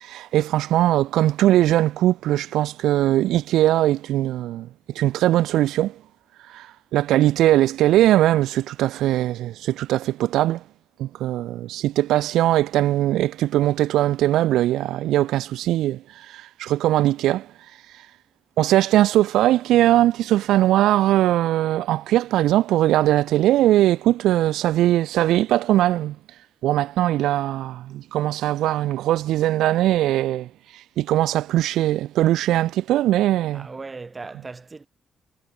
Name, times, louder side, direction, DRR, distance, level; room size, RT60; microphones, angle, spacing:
voice 1, 0.0-4.7 4.9-5.9 6.5-6.7 6.9-10.6 11.0-16.0 16.3-17.5 18.6-26.2 26.6-30.5 31.0-33.7, right 14 dB, 90° right, 0.7 m, -20 dB
voice 2, 33.5-34.9, right 4 dB, 20° right, 3.6 m, -37 dB
cardioid pair, 135°, 0 cm